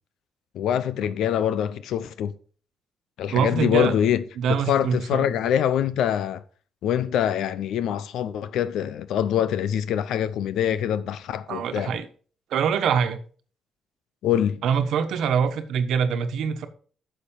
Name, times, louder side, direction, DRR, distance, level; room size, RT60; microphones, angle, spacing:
voice 1, 0.5-2.3 3.2-4.2 4.7-6.4 6.8-12.0 14.2-14.6, left 10 dB, 90° left, 0.7 m, -24 dB
voice 2, 3.3-4.0 4.4-5.3 11.5-12.1 12.5-13.2 14.6-16.7, right 7 dB, 85° right, 1.2 m, -24 dB
10.0 x 6.7 x 5.2 m
cardioid pair, 90°, 0 cm